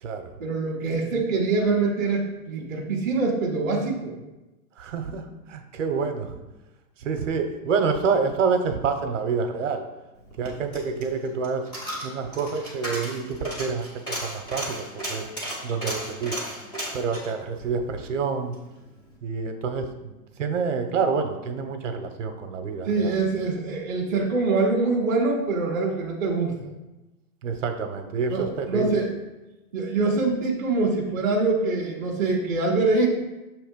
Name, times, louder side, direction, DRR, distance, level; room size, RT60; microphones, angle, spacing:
voice 1, 0.4-4.1 22.8-26.7 28.3-29.1 29.7-33.1, right 3 dB, 15° right, -7 dB, 0.5 m, -24 dB
voice 2, 4.8-5.2 5.5-6.4 7.0-9.8 10.4-11.6 12.0-15.3 15.6-16.4 16.9-18.5 19.2-20.1 20.4-23.1 27.4-29.0, right 5 dB, 60° right, 6 dB, 0.8 m, -27 dB
Coin (dropping), 10.2-18.6 19.0-19.1, right 1 dB, 10° left, 0.9 m, -35 dB
6.9 x 3.1 x 5.1 m, 1.0 s
hypercardioid pair, 170°, 42 cm